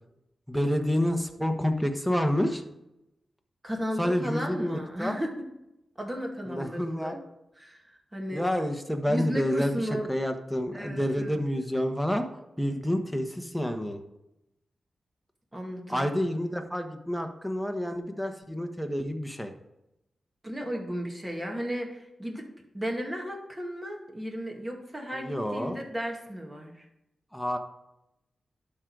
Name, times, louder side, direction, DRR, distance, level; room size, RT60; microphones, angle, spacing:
voice 1, 0.5-2.6 4.0-5.2 6.4-7.2 8.3-9.8 10.1-12.2 12.6-14.0 15.9-19.5 25.1-25.8 27.3-27.6, equal, ahead, 4 dB, 1.2 m, -28 dB
voice 2, 3.6-5.3 6.0-7.2 7.6-7.8 8.1-8.5 9.1-10.1 10.7-11.4 15.5-16.1 20.4-22.4 22.7-26.8, equal, 20° right, 1 dB, 2.2 m, -34 dB
11.5 x 3.9 x 4.9 m, 0.89 s
cardioid pair, 55°, 0 cm